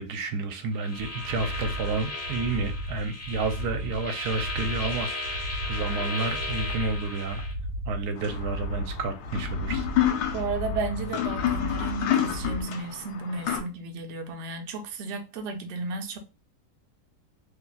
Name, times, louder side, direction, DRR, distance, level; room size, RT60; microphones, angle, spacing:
voice 1, 0.0-7.4 7.9-9.9, right 3 dB, 80° right, 1.1 m, -31 dB
sound 1, 0.7-7.5, left 2 dB, 20° left, 0.4 m, -36 dB
sound 2, 1.0-12.6, equal, 55° left, 1.0 m, -35 dB
sound 3, 8.2-13.6, left 10 dB, 75° left, 1.2 m, -29 dB
voice 2, 10.3-16.2, right 3 dB, 60° right, 0.8 m, -33 dB
2.8 x 2.3 x 4.0 m
omnidirectional pair, 1.7 m